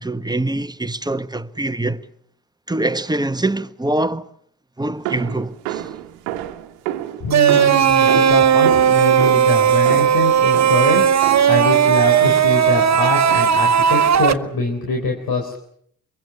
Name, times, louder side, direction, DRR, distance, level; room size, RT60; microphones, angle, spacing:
voice 1, 0.0-2.0 2.7-4.2 4.8-5.8, right 2 dB, 10° right, 1.2 m, -24 dB
sound 1, 5.1-11.7 12.2-12.7 13.3-13.8, right 13 dB, 80° right, 1.2 m, -30 dB
voice 2, 7.2-15.6, left 3 dB, 60° left, 4.2 m, -24 dB
sound 2, 7.3-14.3, right 8 dB, 40° right, 1.3 m, -15 dB
24.5 x 23.0 x 7.3 m
hypercardioid pair, 45°, 41 cm